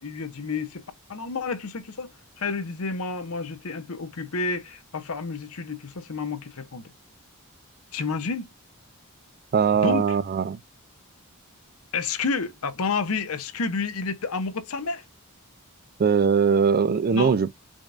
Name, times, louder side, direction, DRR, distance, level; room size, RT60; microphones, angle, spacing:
voice 1, 0.0-0.8 1.1-2.1 2.4-6.9 7.9-8.5 9.7-10.0 11.9-15.0 17.1-17.4, left 4 dB, 70° left, 0.8 m, -30 dB
voice 2, 9.5-10.6 16.0-17.5, right 6 dB, 40° right, 0.3 m, -21 dB
5.0 x 2.5 x 2.3 m
head